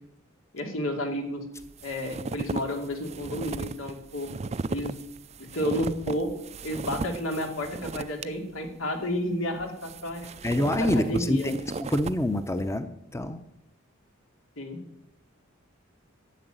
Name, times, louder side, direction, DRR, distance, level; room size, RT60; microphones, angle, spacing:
voice 1, 0.5-1.4 1.8-4.3 4.7-5.0 5.5-6.3 6.6-11.5 14.6-14.8, left 1 dB, 90° left, 4 dB, 2.8 m, -31 dB
sound 1, 1.6-8.2 8.7-8.8 9.6-12.2, right 3 dB, 35° right, 0.4 m, -36 dB
voice 2, 10.4-13.4, left 1 dB, 15° left, 10 dB, 0.7 m, -26 dB
13.0 x 7.1 x 9.2 m, 0.82 s
head